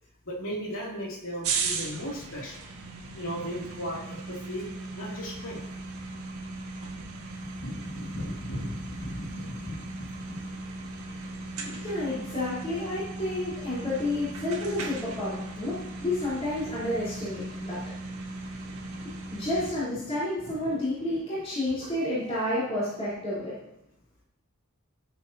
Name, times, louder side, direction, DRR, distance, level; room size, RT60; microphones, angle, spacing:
voice 1, 0.2-2.6 3.1-4.7 4.9-5.6 6.9-7.0 7.5-10.5 18.7-18.9 20.4-20.8, equal, 65° left, -3 dB, 3.0 m, -37 dB
sound 1, 1.4-19.7, right 3 dB, 75° right, 1.8 m, -37 dB
voice 2, 11.8-23.6, left 1 dB, 25° left, -10 dB, 4.3 m, -31 dB
18.0 x 7.7 x 2.9 m, 0.81 s
head